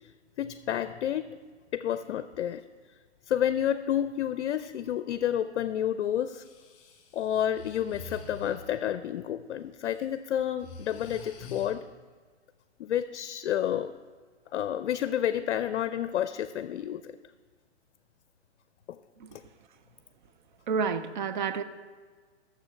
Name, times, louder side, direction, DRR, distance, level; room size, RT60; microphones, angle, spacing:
voice 1, 0.4-1.3 1.7-2.6 3.3-6.4 7.1-11.8 12.8-13.9 14.5-17.2 18.9-19.0 19.3-19.4, left 10 dB, 70° left, 0.5 m, -30 dB
Breathing, 6.3-8.8 9.7-10.0 10.4-11.7, left 3 dB, 25° left, 1.6 m, -46 dB
voice 2, 20.7-21.6, right 5 dB, 45° right, 0.5 m, -29 dB
8.9 x 6.9 x 5.5 m
hypercardioid pair, 160°, 34 cm